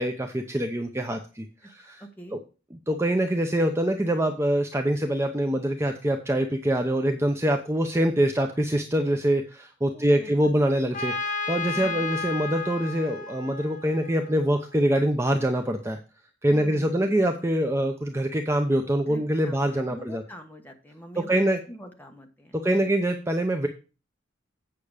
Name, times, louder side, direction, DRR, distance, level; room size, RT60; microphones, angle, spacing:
voice 1, 0.0-2.0 2.7-16.0 16.4-20.2 21.3-21.6 22.5-23.7, right 1 dB, 15° right, 5 dB, 0.6 m, -24 dB
voice 2, 2.0-2.4 9.9-10.3 11.7-12.0 16.5-17.1 19.0-22.9, equal, 10° left, 3 dB, 1.3 m, -44 dB
Trumpet, 10.9-14.7, left 4 dB, 40° left, 1.4 m, -33 dB
8.6 x 6.0 x 4.9 m, 0.33 s
head